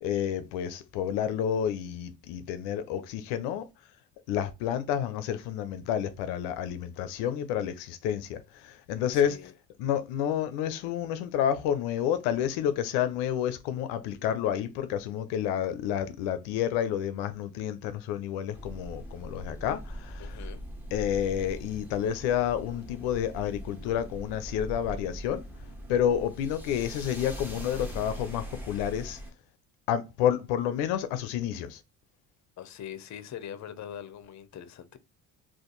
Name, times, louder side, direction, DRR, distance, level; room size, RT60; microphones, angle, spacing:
voice 1, 0.0-3.7 4.3-9.4 9.8-20.4 20.9-25.4 25.9-29.2 29.9-31.8, left 9 dB, 90° left, 0.5 m, -30 dB
voice 2, 9.1-9.5 20.2-20.6 32.6-35.0, left 9 dB, 45° left, 0.6 m, -42 dB
sound 1, 18.5-29.3, equal, 5° right, 1.1 m, -41 dB
2.5 x 2.5 x 3.8 m
supercardioid pair, 70°, 40 cm